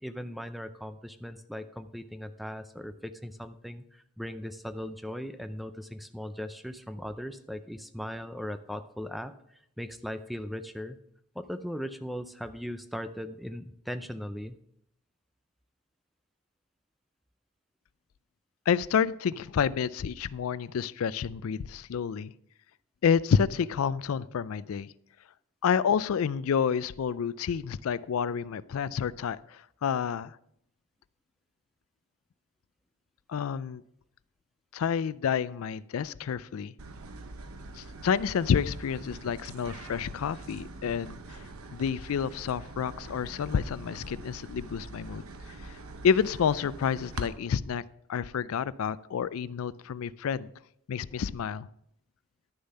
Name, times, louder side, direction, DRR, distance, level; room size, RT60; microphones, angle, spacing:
voice 1, 0.0-9.3 9.8-11.0 11.4-14.6, equal, ahead, 10 dB, 0.4 m, -38 dB
voice 2, 18.7-22.3 23.0-24.9 25.6-30.4 33.3-33.8 34.7-36.7 37.8-41.4 41.7-45.2 45.6-45.8 46.0-47.8 48.1-50.5 50.9-51.7, left 7 dB, 75° left, 18 dB, 0.4 m, -29 dB
sound 1, 36.8-47.3, right 3 dB, 85° right, 0.9 m, -44 dB
11.5 x 6.9 x 5.4 m, 0.73 s
head